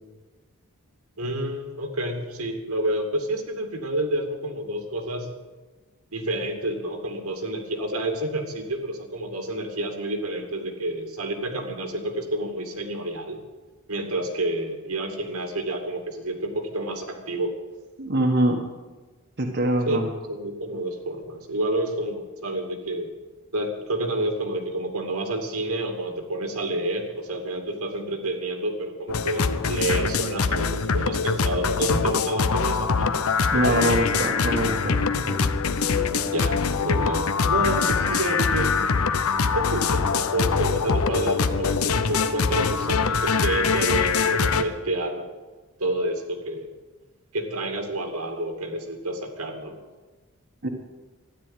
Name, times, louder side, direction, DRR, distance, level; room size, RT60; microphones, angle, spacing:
voice 1, 1.2-5.3 6.1-13.4 13.9-17.5 19.9-23.1 23.5-33.1 33.5-34.0 35.9-38.9 39.5-45.3 45.8-46.7 47.3-49.8, right 1 dB, 85° right, 4 dB, 2.4 m, -29 dB
voice 2, 18.0-18.6 19.4-20.1 33.5-35.6 50.6-50.7, right 1 dB, 50° right, 1 dB, 1.4 m, -24 dB
sound 1, 29.1-44.6, left 5 dB, 75° left, 0.8 m, -23 dB
13.0 x 10.5 x 9.0 m, 1.3 s
head